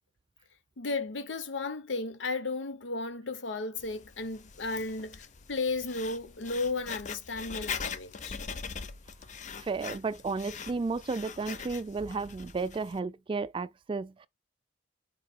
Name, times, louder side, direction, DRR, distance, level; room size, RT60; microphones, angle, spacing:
voice 1, 0.8-8.4, left 3 dB, 85° left, 0.7 m, -34 dB
Writing, 3.8-13.0, left 6 dB, 40° left, 0.5 m, -42 dB
voice 2, 9.6-14.3, right 4 dB, 30° right, 0.3 m, -33 dB
4.7 x 2.6 x 4.3 m
head